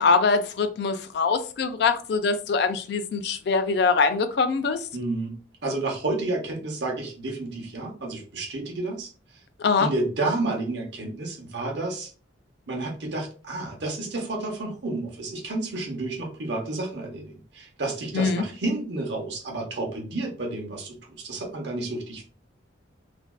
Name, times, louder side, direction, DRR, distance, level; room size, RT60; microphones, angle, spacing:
voice 1, 0.0-4.8 9.6-9.9 18.1-18.4, left 4 dB, 55° left, 0.3 m, -23 dB
voice 2, 4.9-5.3 5.6-9.1 9.8-12.1 12.7-22.2, right 2 dB, 60° right, 0.7 m, -30 dB
2.5 x 2.2 x 2.2 m
head